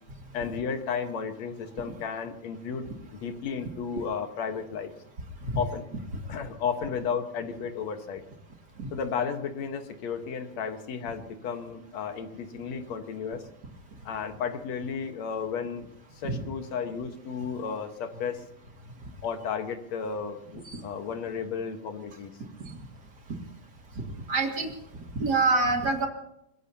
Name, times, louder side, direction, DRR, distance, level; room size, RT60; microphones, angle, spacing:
voice 1, 0.3-4.9 5.5-5.8 6.3-8.2 8.9-13.4 14.1-15.9 16.2-18.4 19.2-22.3, left 6 dB, 55° left, 6 dB, 2.3 m, -33 dB
voice 2, 24.3-24.7 25.2-26.1, right 3 dB, 30° right, 2 dB, 2.3 m, -25 dB
24.5 x 20.5 x 2.9 m, 0.79 s
omnidirectional pair, 4.2 m